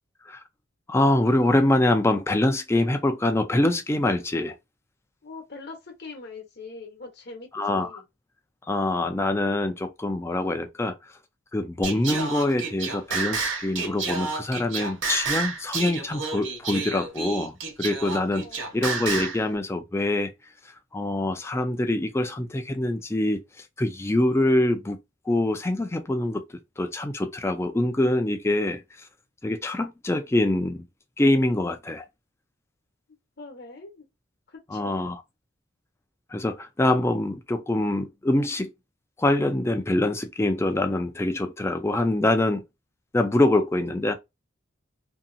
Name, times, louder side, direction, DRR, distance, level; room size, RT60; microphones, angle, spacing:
voice 1, 0.9-4.6 7.5-8.0 8.7-10.9 11.5-18.5 18.7-20.3 20.9-25.0 25.3-26.4 26.8-28.8 29.4-30.8 31.2-32.1 34.7-35.2 36.3-38.7 39.2-42.6 43.1-44.1, left 1 dB, 10° left, 0.3 m, -24 dB
voice 2, 5.2-8.0 18.2-18.7 33.4-34.0 34.5-35.0, left 4 dB, 50° left, 0.9 m, -42 dB
Singing, 11.8-19.4, right 4 dB, 65° right, 1.1 m, -30 dB
2.8 x 2.7 x 2.5 m
head